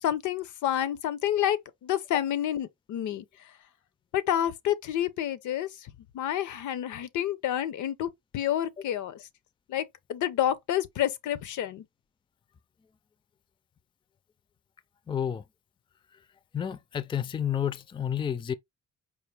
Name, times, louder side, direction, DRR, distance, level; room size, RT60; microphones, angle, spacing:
voice 1, 0.0-3.5 4.1-9.3 9.7-11.8, left 11 dB, 75° left, 0.7 m, -29 dB
voice 2, 15.1-15.4 16.5-18.5, left 9 dB, 15° left, 0.4 m, -30 dB
4.8 x 2.2 x 3.3 m
cardioid pair, 90°, 30 cm